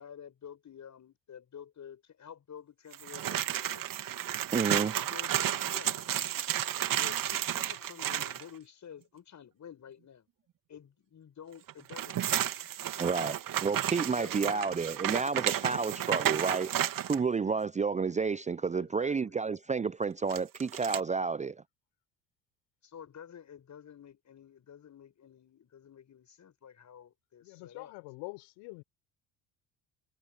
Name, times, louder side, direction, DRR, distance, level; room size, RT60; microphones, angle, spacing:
voice 1, 0.0-3.8 4.5-6.1 6.9-10.3 10.7-12.4 14.0-14.7 18.7-19.2 22.8-27.9, left 8 dB, 40° left, 7.4 m, -50 dB
sound 1, 2.9-8.4 11.7-17.2 20.3-21.0, right 11 dB, 50° right, 3.0 m, -32 dB
voice 2, 4.5-4.9 13.0-21.6, right 5 dB, 15° right, 0.6 m, -31 dB
voice 3, 27.4-28.8, left 28 dB, 70° left, 5.0 m, -45 dB
hypercardioid pair, 60°, 42 cm